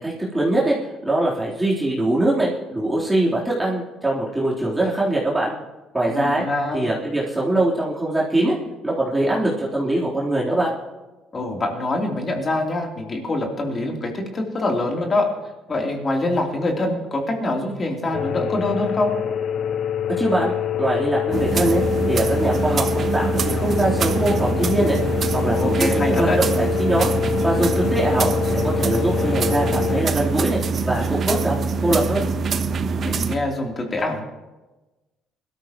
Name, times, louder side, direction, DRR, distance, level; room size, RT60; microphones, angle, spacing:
voice 1, 0.0-0.8 1.1-5.5 5.9-6.4 6.7-8.6 8.8-10.7 20.2-20.5 20.8-21.8 22.1-25.0 25.3-27.1 27.4-28.3 28.6-30.6 30.9-32.3, right 1 dB, 10° right, -6 dB, 3.6 m, -22 dB
voice 2, 6.1-6.9 11.3-15.3 15.7-19.1 25.4-26.4 28.0-28.3 33.0-34.2, left 2 dB, 35° left, 1 dB, 3.3 m, -25 dB
sound 1, 18.1-30.0, left 7 dB, 60° left, 0.6 m, -25 dB
sound 2, 21.3-33.4, right 4 dB, 50° right, 1.0 m, -24 dB
20.5 x 13.5 x 3.1 m, 1.1 s
supercardioid pair, 75°, 0 cm